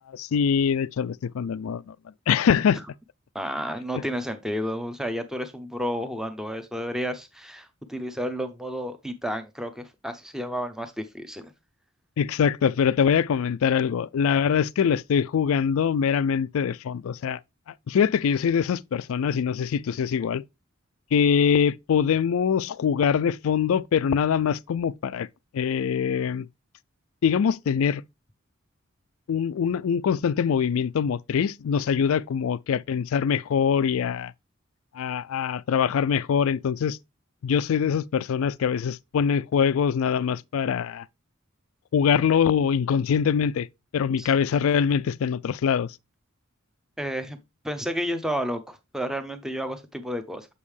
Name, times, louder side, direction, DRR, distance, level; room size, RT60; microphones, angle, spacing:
voice 1, 0.1-2.0 2.3-2.8 12.2-17.4 17.9-20.4 21.1-25.3 25.5-26.5 27.2-28.0 29.3-34.3 34.9-37.0 37.4-41.1 41.9-43.7 43.9-46.0, left 7 dB, 75° left, 0.3 m, -23 dB
voice 2, 3.3-11.5 44.2-44.3 47.0-47.4 47.6-50.5, equal, ahead, 0.7 m, -31 dB
7.2 x 5.3 x 3.3 m
head